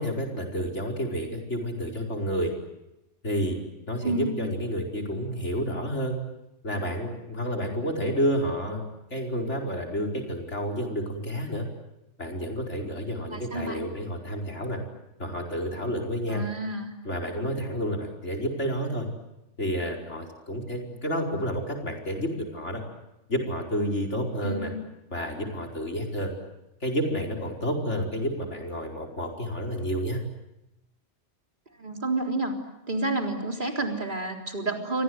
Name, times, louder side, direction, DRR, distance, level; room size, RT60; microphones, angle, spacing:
voice 1, 0.0-2.5 3.2-3.6 3.9-6.1 6.6-8.8 9.1-11.6 12.2-14.8 15.2-16.4 17.0-19.1 19.6-22.8 23.3-24.7 25.1-26.3 26.8-30.2, equal, 75° left, 1 dB, 5.2 m, -30 dB
voice 2, 4.0-4.4 13.3-13.9 16.3-16.9 24.4-24.8 31.8-32.6 32.9-35.0, right 2 dB, 45° right, 2 dB, 4.0 m, -30 dB
30.0 x 24.5 x 7.9 m, 0.91 s
omnidirectional pair, 1.2 m